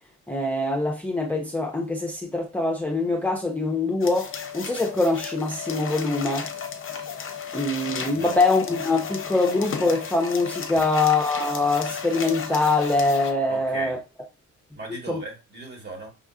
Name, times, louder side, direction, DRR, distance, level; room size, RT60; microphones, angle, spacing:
voice 1, 0.3-6.5 7.5-14.0 15.1-15.2, left 2 dB, 5° left, 0.6 m, -24 dB
sound 1, 4.0-13.3, left 6 dB, 45° left, 0.6 m, -34 dB
voice 2, 13.5-14.0 14.7-16.1, right 1 dB, 35° right, 1.6 m, -37 dB
5.5 x 2.5 x 2.4 m
cardioid pair, 100°, 31 cm